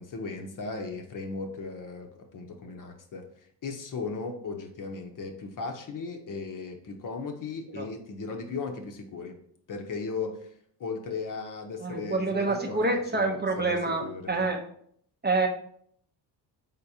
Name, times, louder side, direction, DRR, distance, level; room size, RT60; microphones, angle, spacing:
voice 1, 0.0-9.3 9.7-10.5 10.8-12.9 13.1-13.8 14.0-14.3, left 4 dB, 40° left, 4 dB, 0.8 m, -37 dB
voice 2, 11.8-14.6 15.2-15.5, right 3 dB, 20° right, 2 dB, 0.7 m, -27 dB
3.9 x 3.6 x 2.7 m, 0.64 s
hypercardioid pair, 55°, 49 cm